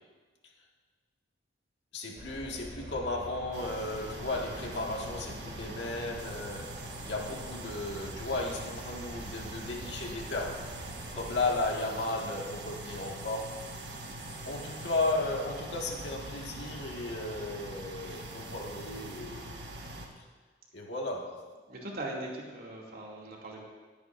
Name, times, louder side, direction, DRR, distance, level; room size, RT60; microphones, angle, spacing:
voice 1, 1.9-6.7 7.0-10.7 11.1-13.6 14.5-19.6 20.7-21.4, left 2 dB, 75° left, -1 dB, 1.8 m, -34 dB
sound 1, 2.2-11.7, right 1 dB, 30° right, 2.6 m, -47 dB
sound 2, 3.5-20.1, right 1 dB, 70° right, 1.4 m, -43 dB
voice 2, 21.7-23.6, right 1 dB, 55° right, -3 dB, 2.6 m, -40 dB
21.0 x 9.7 x 2.6 m, 1.4 s
head